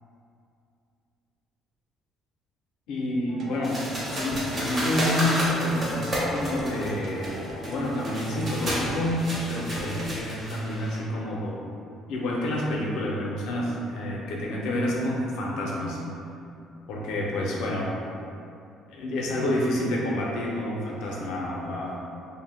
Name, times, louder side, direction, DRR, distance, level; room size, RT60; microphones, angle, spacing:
voice 1, 2.9-3.8 4.1-11.6 12.1-16.0 16.9-17.9 18.9-21.9, left 1 dB, 80° left, -3 dB, 0.5 m, -29 dB
sound 1, 3.3-10.2, right 1 dB, 50° right, 0.3 m, -38 dB
sound 2, 3.6-11.0, equal, 30° right, 0.7 m, -31 dB
2.1 x 2.1 x 3.2 m, 2.6 s
cardioid pair, 140°, 0 cm